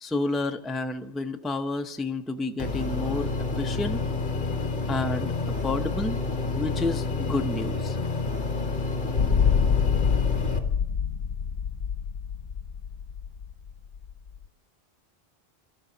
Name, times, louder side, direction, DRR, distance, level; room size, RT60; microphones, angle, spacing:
voice 1, 0.0-4.0 4.9-6.2 6.5-8.0, left 2 dB, ahead, 5 dB, 0.7 m, -30 dB
sound 1, 2.6-10.6, left 3 dB, 45° left, 1.7 m, -29 dB
sound 2, 9.1-14.4, left 7 dB, 85° left, 1.1 m, -26 dB
25.5 x 13.0 x 4.0 m, 0.78 s
omnidirectional pair, 1.1 m